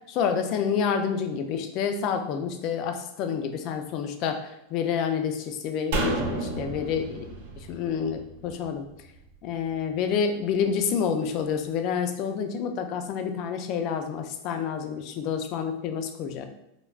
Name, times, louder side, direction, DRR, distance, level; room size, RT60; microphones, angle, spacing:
voice 1, 0.1-7.3 7.7-8.8 9.4-16.5, left 7 dB, 45° left, 7 dB, 0.3 m, -28 dB
sound 1, 5.9-9.3 9.6-9.7, right 3 dB, 70° right, 0.5 m, -32 dB
3.2 x 2.0 x 2.3 m, 0.86 s
supercardioid pair, 150°, 0 cm